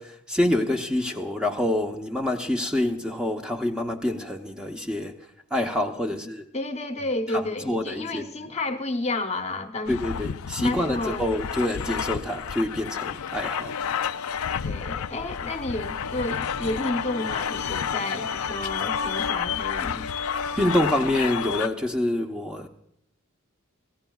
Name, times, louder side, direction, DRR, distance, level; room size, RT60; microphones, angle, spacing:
voice 1, 0.0-5.1 5.5-6.4 7.3-8.2 9.9-13.7 20.6-22.7, left 1 dB, 5° right, 0.9 m, -26 dB
voice 2, 6.1-9.9 10.6-11.3 14.6-20.1, left 2 dB, 30° left, 0.9 m, -31 dB
sound 1, 9.8-21.7, left 7 dB, 70° left, 0.5 m, -30 dB
25.0 x 16.0 x 2.3 m
head